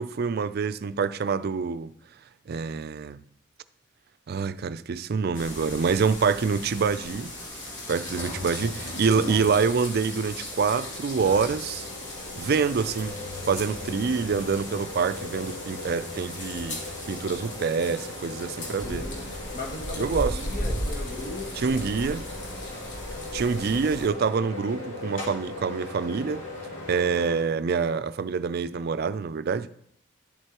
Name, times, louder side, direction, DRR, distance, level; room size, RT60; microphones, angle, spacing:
voice 1, 0.0-1.9 2.5-3.2 4.3-7.3 7.9-11.9 12.4-13.2 13.5-16.8 17.1-19.1 20.0-20.4 21.6-22.2 23.3-26.4 26.9-29.7, right 5 dB, 55° right, 0.4 m, -26 dB
sound 1, 5.3-24.1, left 1 dB, 65° left, 2.1 m, -37 dB
sound 2, 8.1-27.4, left 2 dB, 85° left, 2.7 m, -39 dB
voice 2, 18.8-19.3 19.5-22.3 23.0-23.3, left 2 dB, 45° left, 1.4 m, -38 dB
11.5 x 7.9 x 2.9 m
head